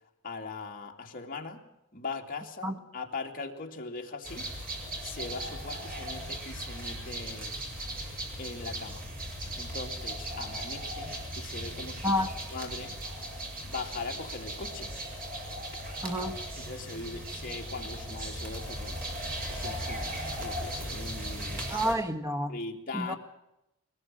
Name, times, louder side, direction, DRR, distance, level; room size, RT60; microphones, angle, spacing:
voice 1, 0.2-1.7 1.9-4.6 5.0-7.6 8.0-8.1 8.4-9.0 9.6-12.1 12.5-12.9 13.6-14.9 16.6-19.0 19.5-21.8 22.5-23.2, left 3 dB, 40° left, 2.6 m, -40 dB
sound 1, 4.2-21.9, right 1 dB, 40° right, 5.4 m, -37 dB
voice 2, 16.0-16.4 21.7-22.6 22.9-23.1, equal, 15° right, 1.3 m, -29 dB
21.5 x 19.5 x 7.7 m
head